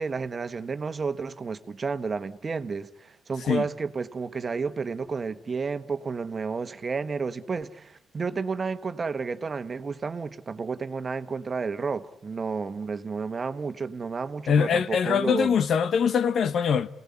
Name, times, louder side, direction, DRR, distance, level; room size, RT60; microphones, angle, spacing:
voice 1, 0.0-15.5, right 4 dB, 40° right, 1.4 m, -31 dB
voice 2, 14.5-16.9, left 7 dB, 60° left, 1.0 m, -23 dB
29.0 x 18.0 x 9.8 m
supercardioid pair, 65°, 0 cm